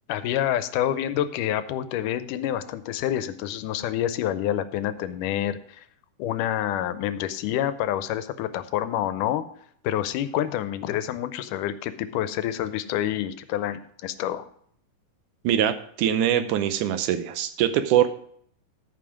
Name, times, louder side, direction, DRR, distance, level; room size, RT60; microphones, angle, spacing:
voice 1, 0.1-5.8 6.2-9.4 9.8-14.5, left 11 dB, 90° left, 12 dB, 2.2 m, -27 dB
voice 2, 15.4-18.1, right 10 dB, 80° right, 10 dB, 2.2 m, -23 dB
13.0 x 5.6 x 4.9 m, 0.63 s
omnidirectional pair, 3.7 m